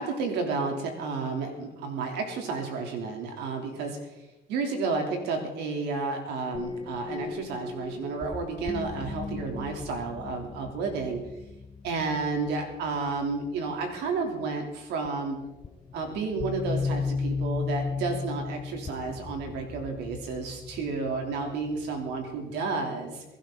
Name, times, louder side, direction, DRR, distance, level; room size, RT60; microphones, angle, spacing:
voice 1, 0.0-4.1 4.5-11.2 11.8-15.4 15.9-23.2, right 4 dB, 85° right, 3 dB, 3.3 m, -31 dB
sound 1, 6.5-13.4 15.0-15.1 15.6-22.7, left 4 dB, 25° left, 0.7 m, -36 dB
22.5 x 11.5 x 4.0 m, 0.98 s
cardioid pair, 110°, 17 cm